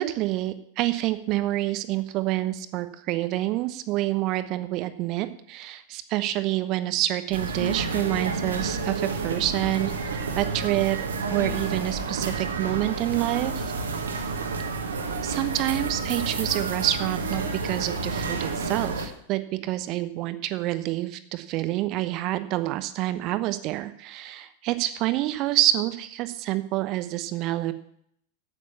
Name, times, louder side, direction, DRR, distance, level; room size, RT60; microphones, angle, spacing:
voice 1, 0.0-11.0 11.3-13.7 15.2-27.7, right 15 dB, 40° right, 12 dB, 0.9 m, -27 dB
sound 1, 7.3-19.1, right 4 dB, 70° right, 1.5 m, -30 dB
8.5 x 8.3 x 7.3 m, 0.70 s
figure-of-eight pair, 90°, 0 cm